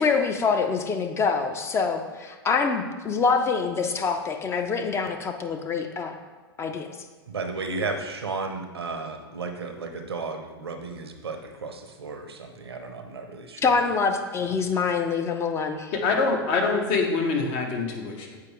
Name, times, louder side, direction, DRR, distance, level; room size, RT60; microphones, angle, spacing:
voice 1, 0.0-6.2 6.6-6.9 13.6-15.9, left 5 dB, 20° left, 5 dB, 0.6 m, -25 dB
voice 2, 7.3-13.6, right 3 dB, 80° right, 5 dB, 0.8 m, -34 dB
voice 3, 15.9-18.4, left 4 dB, 45° left, 2 dB, 1.1 m, -25 dB
7.4 x 4.8 x 3.1 m, 1.4 s
figure-of-eight pair, 95°, 13 cm